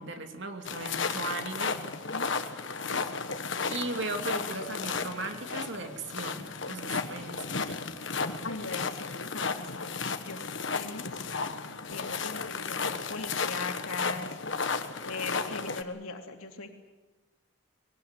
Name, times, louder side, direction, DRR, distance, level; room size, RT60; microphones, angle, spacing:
voice 1, 0.0-1.8 2.9-3.1 3.7-7.8, right 2 dB, 55° right, 5 dB, 2.6 m, -37 dB
sound 1, 0.7-15.8, left 5 dB, 60° left, 1.4 m, -34 dB
voice 2, 8.4-10.5 10.7-11.1 11.9-14.3 15.0-16.7, left 3 dB, 85° left, 3 dB, 3.0 m, -39 dB
23.0 x 18.5 x 9.1 m, 1.2 s
head